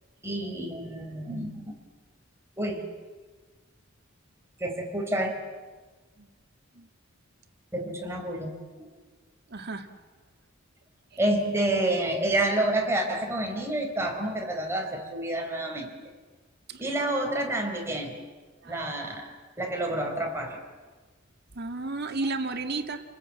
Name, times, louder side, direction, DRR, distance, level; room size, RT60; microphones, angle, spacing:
voice 1, 0.2-1.7 2.6-2.8 4.6-5.3 7.7-8.9 11.2-15.9 16.8-18.2 18.6-20.6, right 1 dB, 15° right, 1 dB, 4.5 m, -29 dB
voice 2, 9.5-9.9 16.7-16.8 18.6-18.8 21.6-23.0, right 3 dB, 50° right, 6 dB, 1.9 m, -32 dB
29.5 x 20.0 x 8.8 m, 1.3 s
head